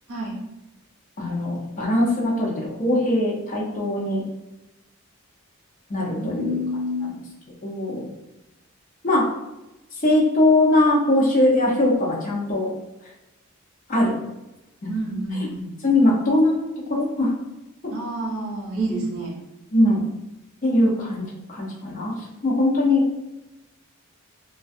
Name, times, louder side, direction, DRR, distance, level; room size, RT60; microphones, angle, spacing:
voice 1, 1.2-4.2 5.9-6.5 7.6-8.1 9.0-9.2 10.0-12.7 13.9-14.2 15.8-16.6 16.9-17.3 19.7-20.1 20.6-23.0, left 1 dB, 35° left, -4 dB, 0.6 m, -21 dB
voice 2, 6.1-7.1 14.9-15.7 17.9-19.3, equal, 70° right, -2 dB, 0.7 m, -28 dB
2.4 x 2.2 x 2.5 m, 0.97 s
head